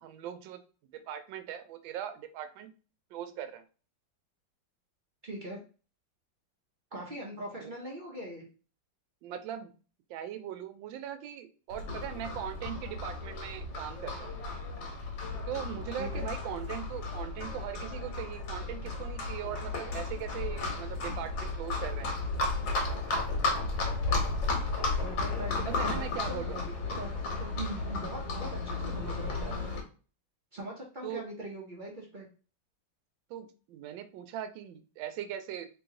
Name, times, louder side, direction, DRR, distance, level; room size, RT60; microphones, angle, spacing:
voice 1, 0.0-0.6 0.9-2.7 3.1-3.6 7.6-7.7 9.2-9.7 10.1-14.3 15.5-22.1 25.5-26.6 31.0-31.2 33.3-35.7, right 10 dB, 90° right, 9 dB, 1.3 m, -40 dB
voice 2, 5.2-5.6 6.9-8.4 16.0-16.3 25.0-27.1 27.4-29.8 30.5-32.3, right 1 dB, 60° right, -3 dB, 0.5 m, -41 dB
Livestock farm animals working animals, 11.7-29.8, left 3 dB, 75° left, 1.6 m, -34 dB
3.1 x 2.9 x 3.6 m, 0.36 s
omnidirectional pair, 2.0 m